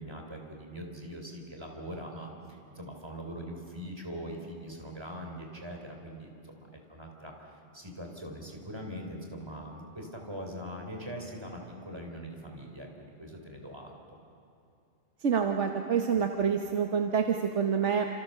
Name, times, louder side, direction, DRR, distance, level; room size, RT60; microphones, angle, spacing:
voice 1, 0.0-14.2, equal, 20° right, 1 dB, 3.9 m, -42 dB
voice 2, 15.2-18.1, right 7 dB, 70° right, 4 dB, 1.4 m, -27 dB
28.0 x 27.5 x 6.7 m, 2.5 s
omnidirectional pair, 1.2 m